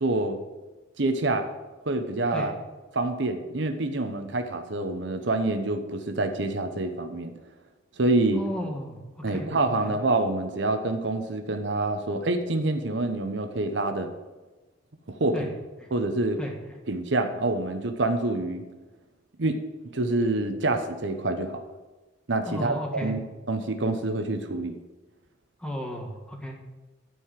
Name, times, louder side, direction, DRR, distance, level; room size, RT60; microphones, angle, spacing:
voice 1, 0.0-0.4 1.0-1.5 1.9-2.5 2.9-7.3 8.0-8.4 9.2-14.1 15.1-15.5 15.9-16.4 16.9-18.6 19.4-19.6 19.9-21.6 22.3-24.8, right 2 dB, 65° right, 7 dB, 0.9 m, -27 dB
voice 2, 8.3-9.0 9.3-9.9 15.3-15.5 16.4-16.5 22.5-23.1 25.6-26.5, equal, 5° left, 1 dB, 1.6 m, -34 dB
12.0 x 4.8 x 7.5 m, 1.2 s
head